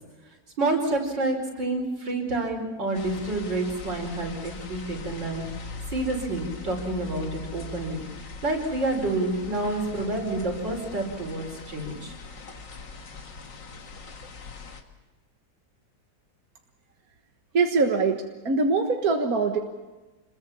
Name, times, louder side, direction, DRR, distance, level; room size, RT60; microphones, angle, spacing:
voice 1, 0.6-12.1, right 2 dB, 75° right, 2 dB, 5.6 m, -29 dB
sound 1, 2.9-14.8, left 3 dB, 70° left, 2.5 m, -41 dB
voice 2, 17.5-19.6, right 4 dB, 55° right, 3 dB, 1.9 m, -23 dB
27.0 x 22.0 x 7.1 m, 1.2 s
omnidirectional pair, 2.0 m